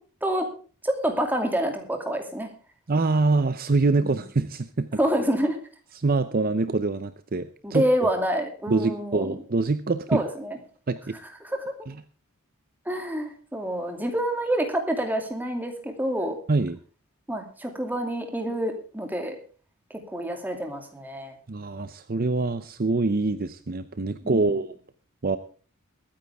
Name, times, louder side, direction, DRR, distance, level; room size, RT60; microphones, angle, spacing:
voice 1, 0.8-2.5 4.0-4.2 5.0-5.6 7.6-9.4 10.1-10.6 11.4-11.6 12.9-16.4 17.3-19.3 20.1-21.3 24.2-24.5, right 1 dB, 10° right, 4 dB, 2.6 m, -27 dB
voice 2, 2.9-4.9 6.0-7.8 8.7-10.2 10.9-11.2 11.9-12.0 16.5-16.8 21.5-24.7 25.2-25.4, right 3 dB, 40° right, 12 dB, 0.6 m, -25 dB
22.5 x 9.6 x 3.5 m, 0.40 s
head